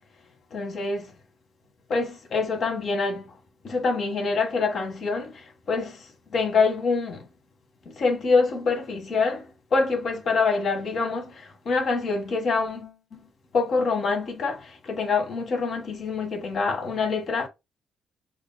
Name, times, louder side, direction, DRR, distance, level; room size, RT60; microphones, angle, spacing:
voice 1, 0.5-1.1 1.9-3.4 3.6-7.3 7.8-17.5, left 4 dB, 60° left, 1.6 m, -26 dB
4.9 x 2.9 x 2.2 m
cardioid pair, 90°, 0 cm